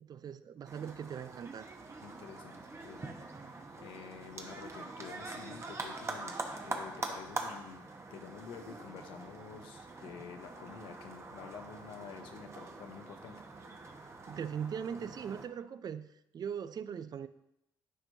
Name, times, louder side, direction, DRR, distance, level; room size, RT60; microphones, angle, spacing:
voice 1, 0.0-1.7 14.3-16.1 16.3-17.3, right 7 dB, 50° right, 13 dB, 0.4 m, -40 dB
sound 1, 0.6-15.5, right 3 dB, 30° right, 1.1 m, -44 dB
voice 2, 2.0-3.2 3.4-13.4, left 7 dB, 80° left, 6 dB, 0.8 m, -49 dB
11.0 x 4.5 x 2.7 m, 0.83 s
supercardioid pair, 65°, 9 cm